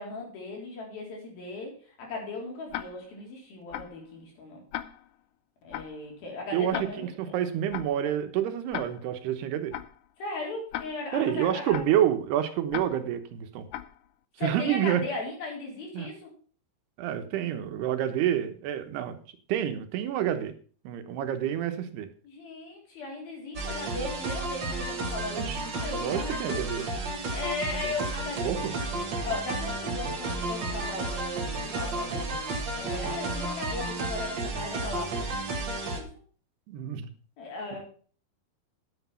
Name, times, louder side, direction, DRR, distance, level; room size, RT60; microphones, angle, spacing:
voice 1, 0.0-1.7 2.0-4.6 5.6-7.1 10.2-11.8 14.4-16.3 22.2-26.7 27.3-28.9 29.2-35.1 35.7-36.1 37.4-37.8, left 3 dB, 65° left, -1 dB, 5.5 m, -37 dB
Tick-tock, 2.7-3.2 3.7-4.1 4.7-5.2 5.7-6.1 6.7-7.2 7.7-8.1 8.7-9.2 9.7-10.1 10.7-11.2 11.7-12.1 12.7-13.2 13.7-14.1, left 12 dB, 80° left, 1.9 m, -38 dB
voice 2, 6.5-9.7 11.1-13.7 14.4-15.0 15.9-16.1 17.0-19.2 19.5-20.5 20.8-22.1 25.3-26.8 27.8-27.9 28.4-28.7 36.7-37.1, right 10 dB, 85° right, 9 dB, 3.1 m, -28 dB
sound 1, 23.5-36.0, right 2 dB, 45° right, 1.5 m, -32 dB
10.0 x 8.2 x 5.6 m, 0.42 s
omnidirectional pair, 4.6 m